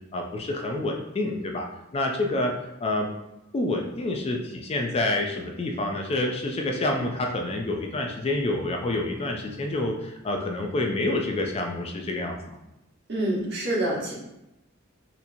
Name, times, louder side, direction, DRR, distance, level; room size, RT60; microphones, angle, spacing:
voice 1, 0.1-1.7 1.9-3.1 3.5-12.4, left 2 dB, 30° left, 2 dB, 0.3 m, -28 dB
voice 2, 13.1-14.1, right 1 dB, 50° right, -5 dB, 1.1 m, -26 dB
4.1 x 2.8 x 2.6 m, 0.91 s
head